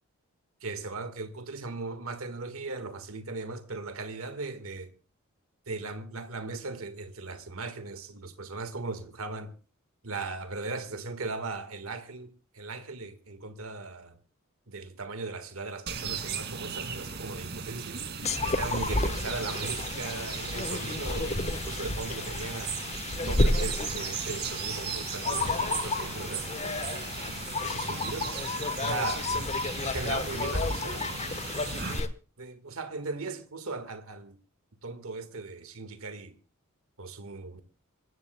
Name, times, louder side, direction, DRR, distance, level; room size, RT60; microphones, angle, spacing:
voice 1, 0.6-4.9 5.7-9.5 10.0-14.1 14.7-18.0 18.4-22.7 23.3-27.1 27.6-28.3 28.8-29.3 29.9-31.4 32.4-34.4 34.8-36.3 37.0-37.6, right 3 dB, 75° right, 1.6 m, -38 dB
sound 1, 15.9-32.0, right 6 dB, 50° right, 2.3 m, -37 dB
sound 2, 18.2-32.1, left 2 dB, 30° left, 1.1 m, -31 dB
26.5 x 14.5 x 2.2 m
head